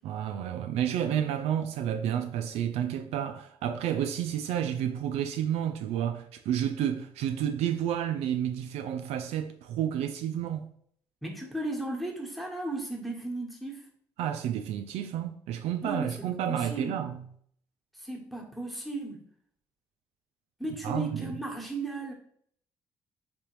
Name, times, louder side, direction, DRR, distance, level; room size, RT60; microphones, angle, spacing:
voice 1, 0.0-10.7 14.2-17.3 20.8-21.4, right 10 dB, 70° right, 0.4 m, -30 dB
voice 2, 11.2-13.8 15.8-16.1 16.5-17.0 18.0-19.2 20.6-22.1, right 2 dB, ahead, 1.2 m, -35 dB
3.3 x 2.9 x 3.0 m
hypercardioid pair, 50°, 11 cm